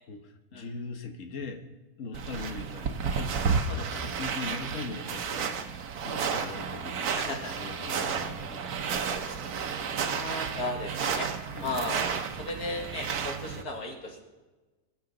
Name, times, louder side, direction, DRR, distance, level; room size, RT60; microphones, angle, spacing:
voice 1, 0.1-1.6 2.0-5.5 6.0-7.1 7.6-8.6 10.1-10.2 11.5-11.8, left 4 dB, 60° left, 6 dB, 1.4 m, -40 dB
sound 1, 2.1-13.6, right 6 dB, 80° right, 1.4 m, -32 dB
voice 2, 7.1-7.5 9.3-9.5 10.0-11.3 11.6-12.0 12.4-14.2, left 2 dB, 90° left, 1 dB, 2.4 m, -35 dB
22.5 x 7.8 x 3.9 m, 1.2 s
omnidirectional pair, 1.6 m